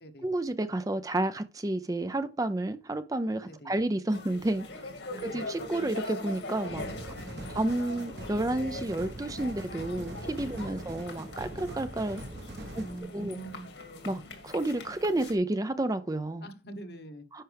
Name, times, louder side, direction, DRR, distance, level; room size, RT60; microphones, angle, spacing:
voice 1, 0.2-4.7 5.2-7.1 7.5-12.2 12.7-12.8 13.1-13.4 14.1-16.5 17.3-17.4, right 1 dB, 20° right, 0.4 m, -31 dB
sound 1, 4.1-15.3, left 2 dB, 75° left, 2.1 m, -42 dB
voice 2, 5.1-5.4 7.3-7.4 10.6-10.8 12.6-13.7 16.4-17.2, right 2 dB, 55° left, 1.1 m, -44 dB
sound 2, 6.7-13.0, right 1 dB, 65° right, 1.3 m, -42 dB
10.0 x 5.8 x 3.4 m
head